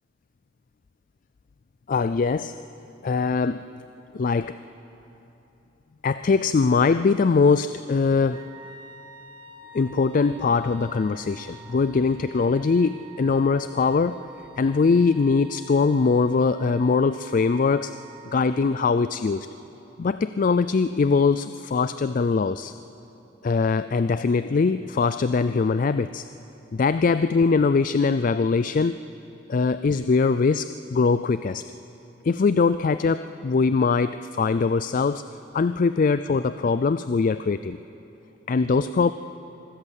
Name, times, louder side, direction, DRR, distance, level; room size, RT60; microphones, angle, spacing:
voice 1, 1.9-2.5 3.0-3.6 4.1-4.6 6.0-8.4 9.7-14.2 14.6-18.0 18.3-19.5 20.0-22.7 23.4-26.2 26.7-29.0 29.5-31.6 32.2-35.2 35.5-37.8 38.5-39.1, left 4 dB, 40° left, 13 dB, 0.4 m, -22 dB
Wind instrument woodwind instrument, 8.3-19.1, right 5 dB, 25° right, 1.8 m, -47 dB
24.5 x 14.0 x 8.2 m, 3.0 s
head